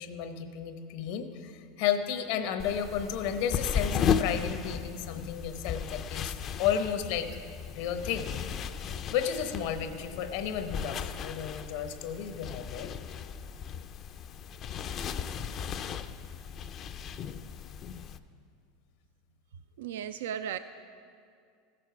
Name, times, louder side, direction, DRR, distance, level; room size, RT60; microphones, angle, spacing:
voice 1, 0.0-7.3 7.7-8.3 9.1-12.9, left 8 dB, 70° left, 8 dB, 0.9 m, -33 dB
sound 1, 2.6-18.2, left 7 dB, 40° left, 0.4 m, -35 dB
voice 2, 19.8-20.6, right 9 dB, 85° right, 11 dB, 0.3 m, -35 dB
15.0 x 6.7 x 5.7 m, 2.3 s
supercardioid pair, 120°, 0 cm